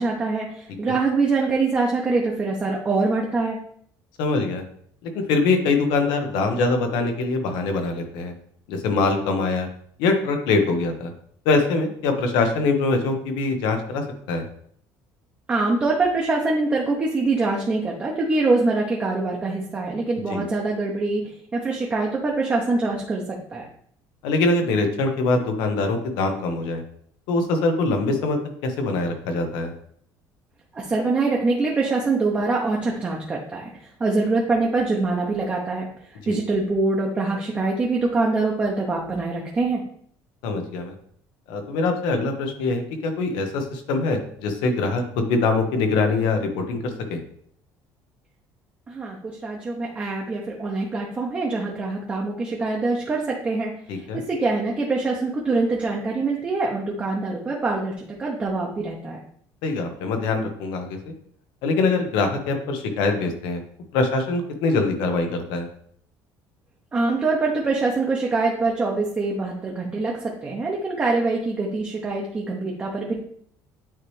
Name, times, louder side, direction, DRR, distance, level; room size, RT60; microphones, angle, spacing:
voice 1, 0.0-3.6 15.5-21.2 21.5-23.7 30.7-35.9 36.3-39.8 48.9-59.2 66.9-73.2, right 3 dB, 20° right, -2 dB, 0.7 m, -24 dB
voice 2, 4.2-4.6 5.0-8.3 8.7-9.7 10.0-11.1 11.4-14.4 20.3-20.5 24.2-26.8 27.3-29.7 36.2-36.4 40.4-40.9 41.5-47.2 53.9-54.2 59.6-61.0 61.6-63.6 63.9-65.7, left 3 dB, 85° left, 5 dB, 1.1 m, -23 dB
9.1 x 3.2 x 3.2 m, 0.63 s
cardioid pair, 170°, 7 cm